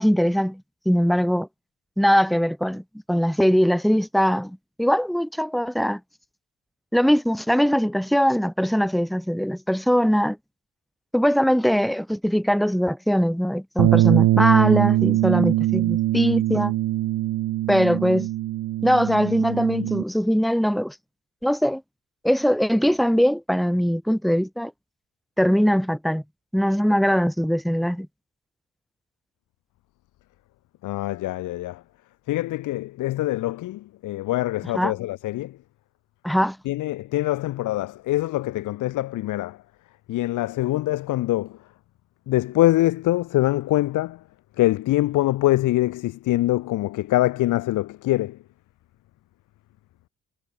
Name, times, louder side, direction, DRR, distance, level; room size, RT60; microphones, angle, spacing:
voice 1, 0.0-1.5 2.0-6.0 6.9-10.4 11.1-16.7 17.7-18.3 18.8-20.9 21.4-21.8 22.2-24.7 25.4-26.2 26.5-28.1 34.7-34.9 36.2-36.6, equal, ahead, 1.8 m, -21 dB
Bass guitar, 13.8-20.0, right 15 dB, 75° right, 0.7 m, -22 dB
voice 2, 30.8-31.8 32.3-35.5 36.7-39.6 40.1-41.5 42.3-44.2 44.6-48.4, left 16 dB, 85° left, 1.1 m, -24 dB
cardioid pair, 90°, 30 cm